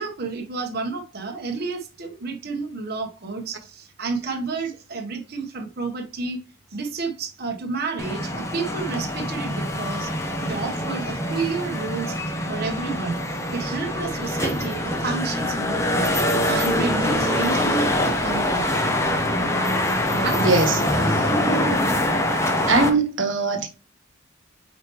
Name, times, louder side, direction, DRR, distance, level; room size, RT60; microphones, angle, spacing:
voice 1, 0.0-6.4 6.7-10.1 10.4-12.1 12.5-13.2 13.5-16.1 16.4-18.8 20.1-20.4, right 4 dB, 55° right, 1.2 m, -30 dB
sound 1, 8.0-22.9, left 1 dB, 15° left, 1.0 m, -24 dB
voice 2, 20.4-21.3 22.7-23.7, right 3 dB, 90° right, 1.3 m, -22 dB
8.7 x 4.3 x 3.1 m
head